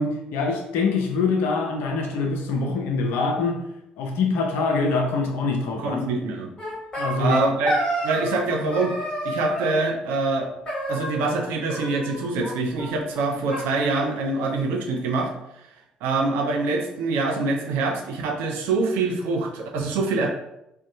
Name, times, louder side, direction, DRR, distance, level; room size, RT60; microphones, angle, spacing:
voice 1, 0.0-3.6 4.0-6.1 7.0-7.4, left 4 dB, 60° left, 2 dB, 0.5 m, -24 dB
voice 2, 5.8-6.5 7.2-7.7 8.0-8.9 9.2-10.5 10.9-15.3 16.0-20.3, right 3 dB, 60° right, 1 dB, 0.4 m, -25 dB
sound 1, 6.6-8.5 8.7-9.7 10.7-11.4 11.7-12.5 12.8-12.9 13.1-13.2 13.5-14.6, right 1 dB, 25° left, 1.1 m, -29 dB
2.6 x 2.2 x 2.6 m, 0.84 s
figure-of-eight pair, 50°, 4 cm